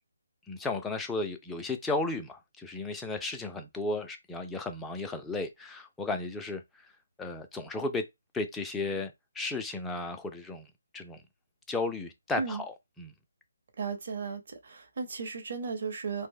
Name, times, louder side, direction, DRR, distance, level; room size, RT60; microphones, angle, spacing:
voice 1, 0.5-6.6 7.2-8.0 8.3-10.7 10.9-11.2 11.7-13.1, left 3 dB, 5° left, 0.3 m, -34 dB
voice 2, 13.8-16.3, right 5 dB, 45° right, 0.7 m, -35 dB
2.5 x 2.0 x 3.7 m
figure-of-eight pair, 145°, 0 cm